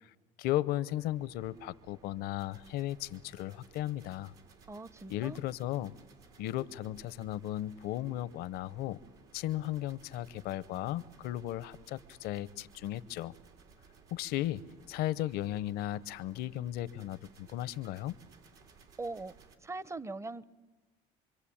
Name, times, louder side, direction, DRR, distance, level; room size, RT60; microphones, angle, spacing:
voice 1, 0.4-4.3 5.1-6.0 6.4-9.0 9.3-13.3 14.1-18.2, left 14 dB, 75° left, 0.8 m, -35 dB
sound 1, 0.9-19.6, right 5 dB, 75° right, 3.5 m, -60 dB
voice 2, 4.7-5.4 19.0-19.3 19.6-20.4, right 3 dB, 15° right, 0.8 m, -40 dB
26.5 x 22.5 x 8.7 m
supercardioid pair, 90°, 16 cm